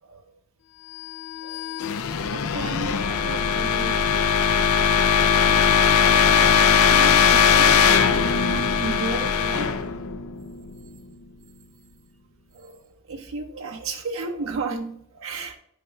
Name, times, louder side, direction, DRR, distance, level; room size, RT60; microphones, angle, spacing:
sound 1, 1.1-10.9, left 7 dB, 90° left, 0.5 m, -20 dB
voice 1, 2.3-4.0 4.7-5.1 5.3-6.4 6.8-9.8 12.5-12.8 13.1-15.6, right 3 dB, 65° right, 0.7 m, -34 dB
10.0 x 5.3 x 2.4 m
head